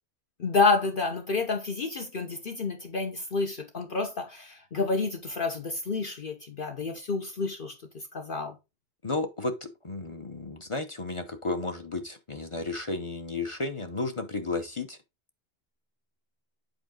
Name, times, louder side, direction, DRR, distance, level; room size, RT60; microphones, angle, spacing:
voice 1, 0.4-7.7 8.1-8.5, left 3 dB, 55° left, 1.1 m, -29 dB
voice 2, 9.0-15.0, left 3 dB, 30° left, 0.8 m, -33 dB
8.1 x 4.9 x 3.8 m
omnidirectional pair, 1.1 m